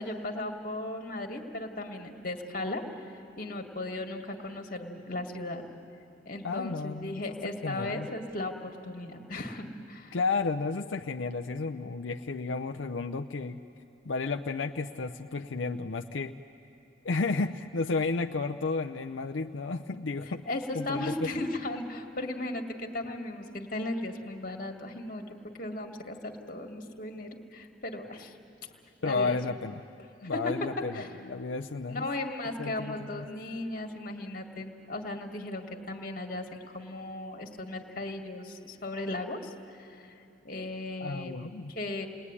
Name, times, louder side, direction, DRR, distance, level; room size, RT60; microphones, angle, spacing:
voice 1, 0.0-2.8 3.4-5.6 6.3-10.2 20.5-25.3 25.6-28.3 29.0-29.4 30.2-30.5 30.9-31.1 31.9-40.1 40.4-42.1, left 2 dB, 45° left, 3 dB, 2.0 m, -36 dB
voice 2, 6.4-7.2 7.6-8.1 10.1-13.6 14.1-16.3 17.0-20.4 20.7-21.3 29.0-29.7 30.2-32.1 32.6-33.2 41.0-41.7, left 4 dB, 85° left, 5 dB, 0.7 m, -32 dB
29.5 x 20.5 x 9.8 m, 2.7 s
head